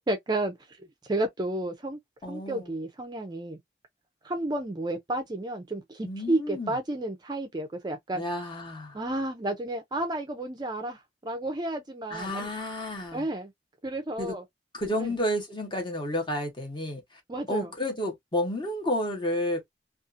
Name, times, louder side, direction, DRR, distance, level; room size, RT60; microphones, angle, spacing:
voice 1, 0.1-0.8 1.0-2.0 2.3-3.6 4.2-8.2 8.9-12.5 13.1-13.5 13.8-14.4 15.0-15.1 17.3-17.7, right 1 dB, 25° right, 0.4 m, -31 dB
voice 2, 2.2-2.7 6.0-6.7 8.1-9.0 12.1-13.3 14.2-14.4 14.7-17.2 17.5-19.6, left 1 dB, 25° left, 1.0 m, -31 dB
2.6 x 2.4 x 2.5 m
head